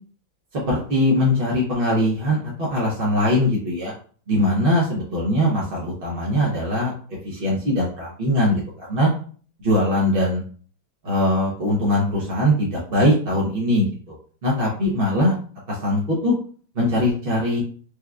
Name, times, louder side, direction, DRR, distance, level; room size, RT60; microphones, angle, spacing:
voice 1, 0.5-3.9 4.3-6.9 7.2-9.1 9.6-10.4 11.0-14.1 14.4-15.3 15.7-16.3 16.7-17.6, left 1 dB, 45° right, -5 dB, 0.7 m, -21 dB
4.6 x 2.3 x 2.3 m, 0.44 s
omnidirectional pair, 2.0 m